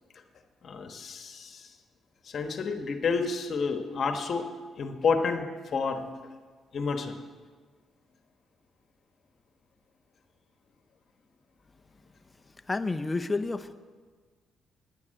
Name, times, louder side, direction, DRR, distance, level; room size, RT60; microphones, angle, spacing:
voice 1, 0.6-1.7 2.3-4.5 4.8-5.4 5.7-6.0 6.7-7.2, left 5 dB, 50° left, 6 dB, 1.3 m, -29 dB
voice 2, 12.7-13.7, left 3 dB, 20° left, 8 dB, 0.7 m, -30 dB
10.0 x 9.5 x 7.6 m, 1.5 s
cardioid pair, 90°, 0 cm